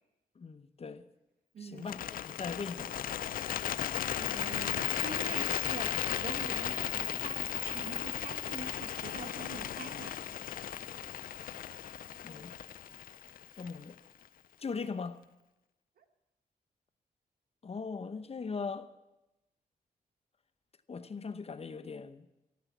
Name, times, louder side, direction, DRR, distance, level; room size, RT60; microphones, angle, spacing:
voice 1, 0.4-1.0 1.6-3.0 12.2-12.5 13.6-14.0 14.6-15.2 17.6-18.9 20.9-22.3, left 5 dB, 40° left, 1.0 m, -40 dB
voice 2, 1.5-2.0 4.1-10.2 16.0-16.1, right 5 dB, 75° right, 1.5 m, -45 dB
Bird, 1.8-14.0, left 10 dB, 65° left, 0.4 m, -36 dB
13.0 x 12.5 x 7.4 m
cardioid pair, 75°, 16 cm